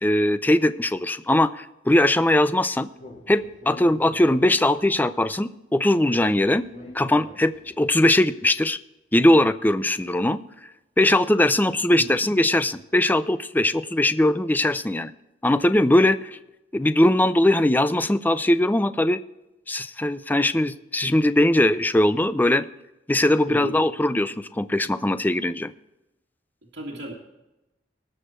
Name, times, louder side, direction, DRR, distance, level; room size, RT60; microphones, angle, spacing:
voice 1, 0.0-2.9 3.3-6.7 6.9-8.8 9.1-10.4 11.0-15.1 15.4-16.4 16.7-19.2 19.7-22.6 23.1-25.7, left 1 dB, 10° left, 13 dB, 0.4 m, -20 dB
Speech, 3.0-4.8 6.1-7.8, left 1 dB, 45° left, 3.8 m, -44 dB
voice 2, 26.7-27.1, equal, 85° right, -6 dB, 2.0 m, -34 dB
19.0 x 6.4 x 4.4 m, 0.95 s
head